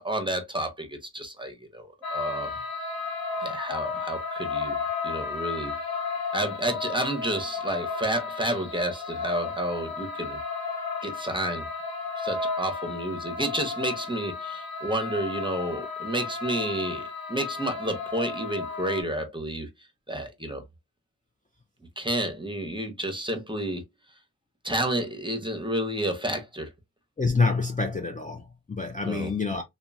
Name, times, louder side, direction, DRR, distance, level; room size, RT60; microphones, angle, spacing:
voice 1, 0.0-2.5 3.4-4.8 5.0-5.8 6.3-10.4 11.0-11.7 12.2-19.7 20.1-20.6 22.0-23.8 24.6-26.7 29.0-29.3, right 1 dB, 15° right, 0.8 m, -30 dB
sound 1, 2.0-19.0, left 4 dB, 80° left, 0.6 m, -33 dB
voice 2, 27.2-29.6, left 4 dB, 20° left, 0.5 m, -27 dB
2.9 x 2.3 x 2.4 m
wide cardioid pair, 45°, 36 cm